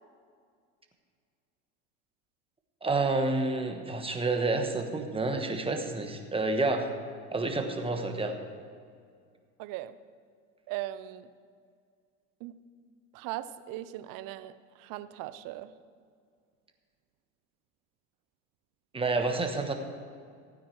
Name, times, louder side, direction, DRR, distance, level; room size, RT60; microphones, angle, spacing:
voice 1, 2.8-6.9 7.3-8.4 18.9-19.7, right 3 dB, 15° right, 5 dB, 1.3 m, -29 dB
voice 2, 9.6-10.0 10.7-11.3 12.4-12.6 13.1-15.7, right 14 dB, 55° right, 14 dB, 0.7 m, -39 dB
15.5 x 9.3 x 4.7 m, 2.2 s
supercardioid pair, 100°, 41 cm